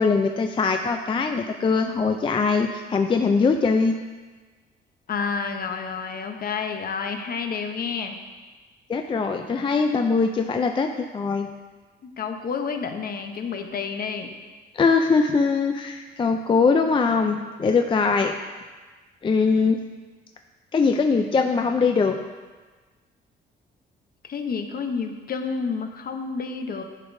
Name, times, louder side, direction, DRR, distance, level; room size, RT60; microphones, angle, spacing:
voice 1, 0.0-4.0 8.9-11.5 14.7-18.3 19.2-19.8 20.7-22.2, left 4 dB, 25° left, 5 dB, 0.4 m, -21 dB
voice 2, 5.1-8.2 12.0-14.3 24.2-26.8, left 5 dB, 50° left, 5 dB, 0.7 m, -29 dB
10.5 x 5.1 x 2.6 m, 1.3 s
cardioid pair, 90°, 20 cm